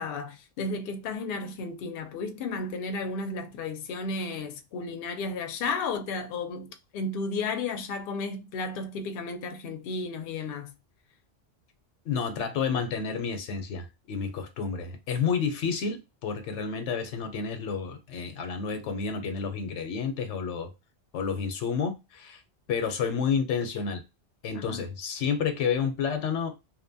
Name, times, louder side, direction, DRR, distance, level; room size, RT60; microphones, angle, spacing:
voice 1, 0.0-10.7 24.5-24.8, left 3 dB, 65° left, 0.7 m, -33 dB
voice 2, 12.1-20.7 21.1-22.4 22.7-24.0 24.4-26.5, left 6 dB, 85° left, 0.9 m, -30 dB
2.7 x 2.2 x 2.6 m
omnidirectional pair, 1.2 m